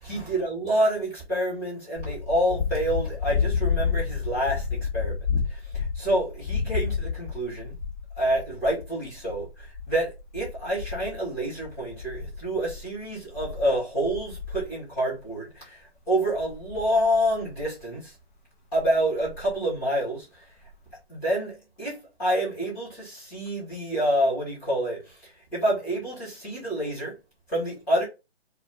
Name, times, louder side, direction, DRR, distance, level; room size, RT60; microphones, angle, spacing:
voice 1, 0.0-5.1 5.5-7.8 8.2-18.1 18.7-20.4 21.1-27.1 27.5-28.0, right 1 dB, 5° left, 0.6 m, -28 dB
sound 1, 2.0-14.7 15.2-15.3 16.3-17.8 18.8-18.9 19.2-19.6 20.7-20.8, left 6 dB, 45° left, 0.7 m, -31 dB
2.4 x 2.0 x 3.1 m
figure-of-eight pair, 145°, 33 cm